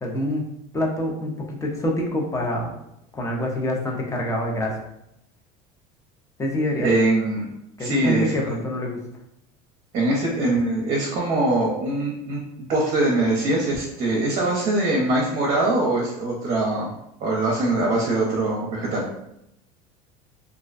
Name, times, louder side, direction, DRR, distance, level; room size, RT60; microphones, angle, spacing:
voice 1, 0.0-0.5 0.7-2.8 3.1-4.8 6.4-6.9 7.8-9.0, left 1 dB, 15° left, 0 dB, 0.5 m, -26 dB
voice 2, 6.8-7.5 7.8-8.5 9.9-12.4 12.7-16.9 17.2-19.1, right 2 dB, 40° right, -3 dB, 0.6 m, -22 dB
2.4 x 2.1 x 2.4 m, 0.80 s
supercardioid pair, 115°, 18 cm